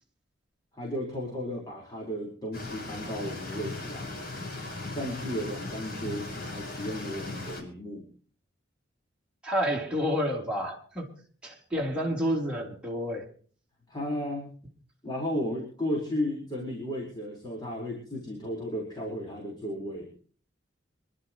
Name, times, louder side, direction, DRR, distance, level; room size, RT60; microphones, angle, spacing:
voice 1, 0.7-4.1 4.9-8.1 13.9-14.5 15.0-20.1, left 1 dB, 25° left, -3 dB, 4.5 m, -34 dB
sound 1, 2.5-7.6, left 2 dB, 55° left, 5.4 m, -38 dB
voice 2, 9.4-11.2 11.4-13.2, equal, 5° right, -3 dB, 3.7 m, -29 dB
26.5 x 11.5 x 3.1 m, 0.43 s
head